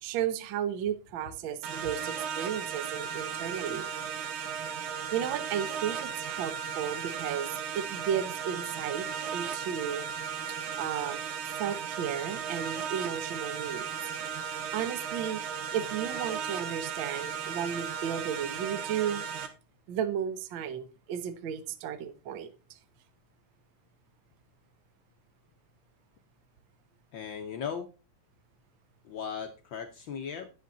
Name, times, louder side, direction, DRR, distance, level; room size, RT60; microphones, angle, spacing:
voice 1, 0.0-3.9 4.2-4.6 5.1-10.0 10.5-11.2 11.6-13.9 14.7-15.4 15.7-19.2 19.9-22.5, right 9 dB, 65° right, 1.2 m, -34 dB
sound 1, 1.6-19.5, right 7 dB, 85° right, 2.5 m, -36 dB
voice 2, 27.1-27.9 29.0-30.5, left 7 dB, 80° left, 1.0 m, -37 dB
10.5 x 7.0 x 4.0 m
omnidirectional pair, 3.4 m